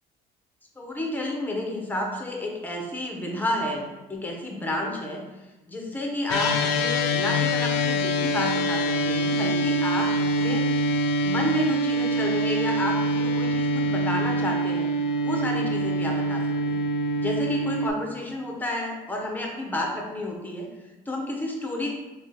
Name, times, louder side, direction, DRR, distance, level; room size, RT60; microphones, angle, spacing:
voice 1, 0.8-3.8 4.1-5.2 5.7-10.7 11.2-14.9 15.2-16.8 17.2-20.7 21.1-21.9, left 1 dB, 10° left, 0 dB, 0.7 m, -30 dB
sound 1, 6.3-17.9, equal, 75° left, 0.4 m, -25 dB
3.4 x 3.0 x 2.9 m, 1.1 s
cardioid pair, 110°, 17 cm